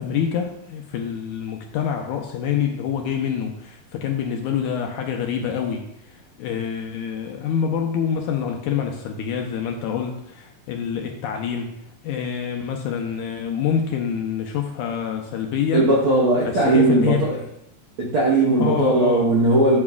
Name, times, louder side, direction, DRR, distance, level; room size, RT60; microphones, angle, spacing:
voice 1, 0.0-11.7 12.0-15.9 16.4-17.3 18.6-19.3, left 8 dB, 80° left, 3 dB, 1.9 m, -26 dB
voice 2, 15.7-17.4 18.0-19.8, right 2 dB, 65° right, -4 dB, 1.3 m, -18 dB
10.5 x 7.1 x 2.4 m, 0.76 s
omnidirectional pair, 3.9 m